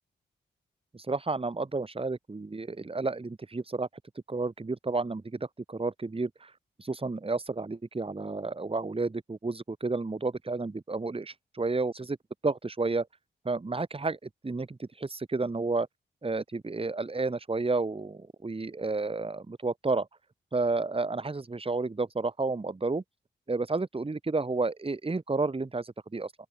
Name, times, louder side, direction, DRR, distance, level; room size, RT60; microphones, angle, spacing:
voice 1, 0.9-3.9 4.3-6.5 6.8-12.2 12.4-13.1 13.4-15.9 16.2-20.1 20.5-23.0 23.5-26.3, right 3 dB, 30° right, 1.5 m, -31 dB
open air
cardioid pair, 45°, 20 cm